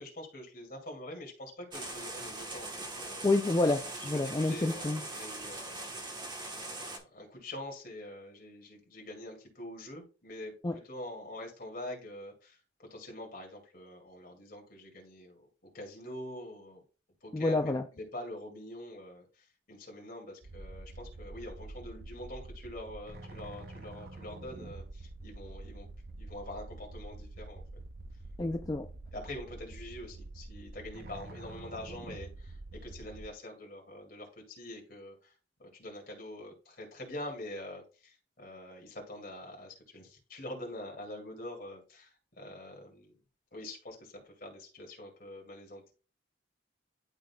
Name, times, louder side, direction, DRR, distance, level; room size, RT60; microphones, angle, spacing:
voice 1, 0.0-3.3 4.0-5.9 6.7-10.5 10.8-16.8 17.2-25.9 26.2-27.8 29.1-35.3 35.6-43.1 43.5-45.8, left 1 dB, 50° left, 2.4 m, -45 dB
sound 1, 1.7-7.0, right 2 dB, 25° right, 1.1 m, -41 dB
voice 2, 3.2-5.0 10.6-10.7 17.3-17.8 28.4-28.9, left 2 dB, 20° left, 0.4 m, -28 dB
sound 2, 20.4-33.3, right 2 dB, 50° right, 0.6 m, -46 dB
11.5 x 3.9 x 2.3 m
head